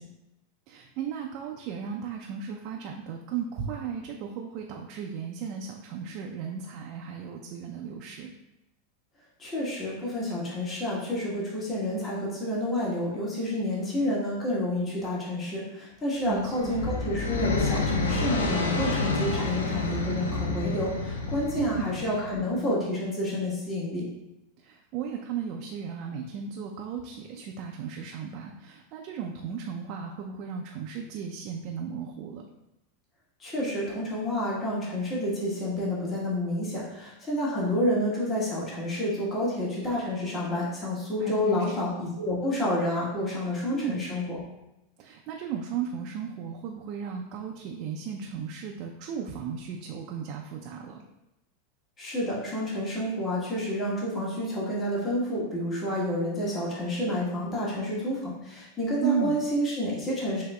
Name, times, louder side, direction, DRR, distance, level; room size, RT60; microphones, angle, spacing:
voice 1, 0.7-8.3 16.2-16.8 21.6-21.9 24.6-32.4 41.2-41.8 43.7-44.0 45.0-51.0 59.0-59.4, right 7 dB, 50° right, 1 dB, 0.4 m, -35 dB
voice 2, 9.4-24.0 33.4-44.4 52.0-60.4, left 1 dB, 25° left, -5 dB, 1.3 m, -29 dB
sound 1, 16.3-22.4, left 3 dB, 80° left, 0.5 m, -29 dB
6.9 x 2.7 x 2.3 m, 0.92 s
hypercardioid pair, 90°, 0 cm